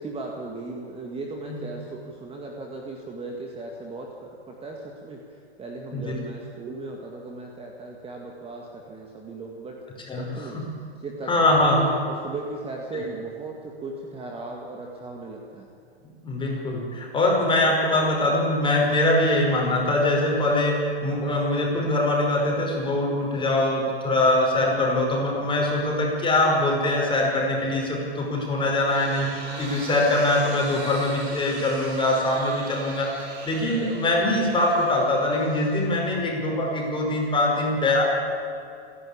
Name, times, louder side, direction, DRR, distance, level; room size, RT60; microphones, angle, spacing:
voice 1, 0.0-9.8 10.0-10.6 11.0-15.7, right 3 dB, 15° right, 0 dB, 2.0 m, -37 dB
voice 2, 10.1-10.6 11.3-11.9 12.9-13.0 16.2-33.1 33.4-38.0, left 1 dB, 15° left, -1 dB, 5.4 m, -23 dB
sound 1, 28.5-36.4, right 3 dB, 80° right, 6.7 m, -41 dB
29.0 x 11.5 x 8.7 m, 2.5 s
hypercardioid pair, 130°, 33 cm